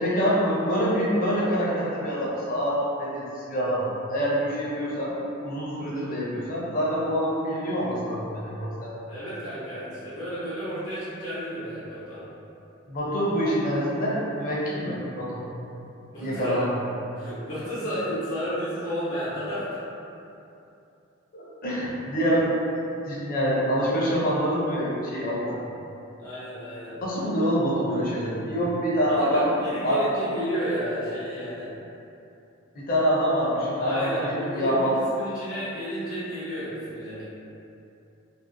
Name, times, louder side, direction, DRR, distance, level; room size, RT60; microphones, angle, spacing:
voice 1, 0.0-3.8 4.1-5.1 5.4-8.9 12.9-15.5 16.2-16.7 21.3-22.5 23.0-25.6 27.0-29.5 29.8-30.0 32.7-34.9, equal, 45° left, -6 dB, 0.6 m, -26 dB
voice 2, 9.1-12.3 16.1-16.7 17.1-19.8 26.2-27.0 29.1-31.7 33.8-37.3, equal, 80° left, -11 dB, 0.9 m, -32 dB
2.6 x 2.5 x 2.5 m, 2.7 s
head